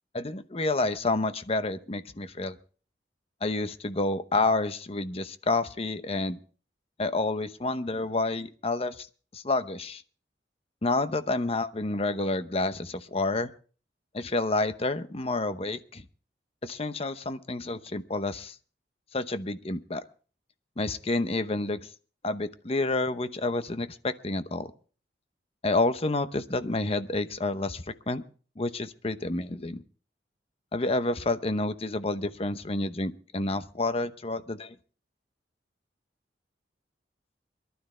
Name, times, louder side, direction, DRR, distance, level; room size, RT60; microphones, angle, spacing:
voice 1, 0.1-2.6 3.4-6.4 7.0-9.1 9.3-10.0 10.8-13.5 14.1-16.0 16.6-18.5 19.1-20.0 20.8-21.8 22.2-24.7 25.6-28.2 28.6-29.8 30.7-34.7, left 2 dB, 35° left, 11 dB, 0.9 m, -29 dB
23.0 x 12.5 x 3.3 m, 0.40 s
head